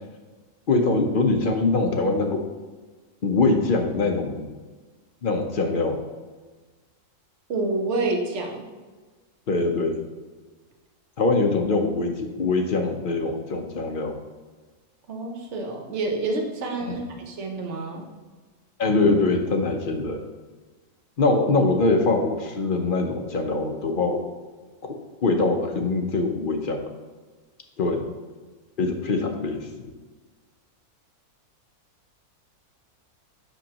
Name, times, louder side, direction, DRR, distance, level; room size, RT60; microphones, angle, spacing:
voice 1, 0.7-2.4 3.2-4.5 5.2-6.0 9.5-10.0 11.2-14.1 16.8-17.0 18.8-20.2 21.2-24.2 24.8-24.9 25.2-26.8 27.8-28.1 28.8-29.7, left 3 dB, 45° left, 4 dB, 0.7 m, -23 dB
voice 2, 7.5-8.6 15.1-18.1, right 2 dB, 50° right, 2 dB, 1.2 m, -28 dB
8.1 x 6.3 x 2.9 m, 1.3 s
omnidirectional pair, 1.6 m